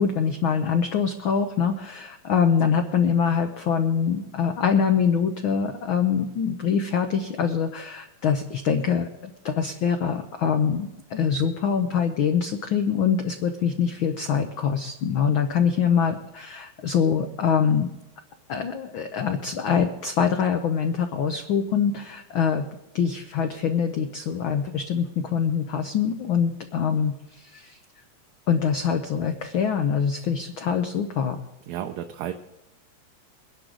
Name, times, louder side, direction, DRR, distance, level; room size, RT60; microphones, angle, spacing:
voice 1, 0.0-17.9 18.5-22.7 22.9-27.8 28.5-31.4, left 7 dB, 85° left, 6 dB, 1.1 m, -24 dB
voice 2, 31.7-32.3, right 11 dB, 75° right, 5 dB, 1.9 m, -32 dB
22.0 x 11.0 x 3.8 m, 0.94 s
omnidirectional pair, 3.3 m